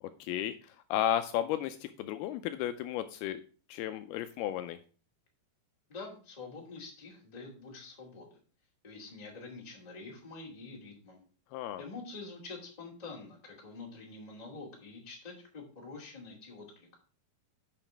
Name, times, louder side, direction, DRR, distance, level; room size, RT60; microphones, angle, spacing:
voice 1, 0.0-3.4 3.7-4.8 11.5-11.8, left 11 dB, 80° left, 9 dB, 2.4 m, -34 dB
voice 2, 5.9-8.3 8.8-11.2 11.8-16.9, left 3 dB, 15° left, -1 dB, 1.4 m, -46 dB
8.9 x 5.8 x 4.5 m, 0.38 s
omnidirectional pair, 4.7 m